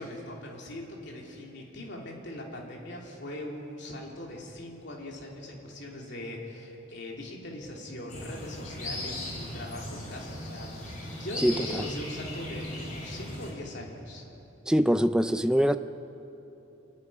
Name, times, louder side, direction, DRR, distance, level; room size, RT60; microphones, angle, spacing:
voice 1, 0.0-14.3, left 1 dB, 55° left, -1 dB, 3.3 m, -41 dB
sound 1, 8.1-13.5, left 1 dB, 35° left, 5.0 m, -38 dB
voice 2, 11.4-11.9 14.7-15.8, equal, 5° right, 10 dB, 0.4 m, -24 dB
27.0 x 9.7 x 10.0 m, 2.9 s
head